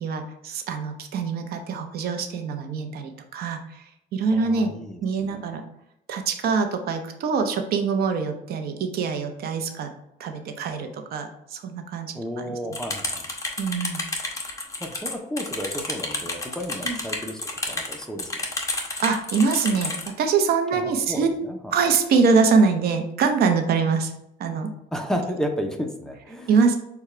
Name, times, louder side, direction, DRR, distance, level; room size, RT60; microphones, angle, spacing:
voice 1, 0.0-3.6 4.1-4.7 5.0-5.6 6.1-9.9 10.2-12.6 13.6-14.0 16.8-17.0 19.0-19.9 20.2-21.3 21.7-24.1 24.4-24.7 26.5-26.8, right 5 dB, 65° right, 6 dB, 0.7 m, -24 dB
voice 2, 4.3-5.4 12.1-13.3 14.8-18.4 20.7-21.7 24.9-26.6, equal, 5° left, 2 dB, 0.6 m, -32 dB
sound 1, 12.7-20.1, left 2 dB, 20° left, 0.9 m, -30 dB
6.6 x 2.3 x 3.2 m, 0.82 s
cardioid pair, 110°, 17 cm